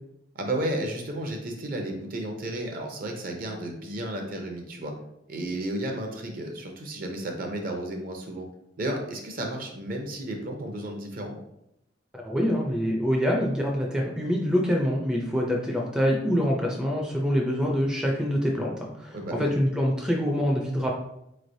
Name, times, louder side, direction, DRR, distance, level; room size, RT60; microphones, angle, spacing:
voice 1, 0.3-4.9 5.3-8.5 8.8-11.4 19.1-19.5, right 1 dB, 50° right, 3 dB, 0.6 m, -33 dB
voice 2, 12.2-20.9, equal, 5° right, -1 dB, 0.4 m, -25 dB
4.3 x 3.2 x 2.6 m, 0.81 s
head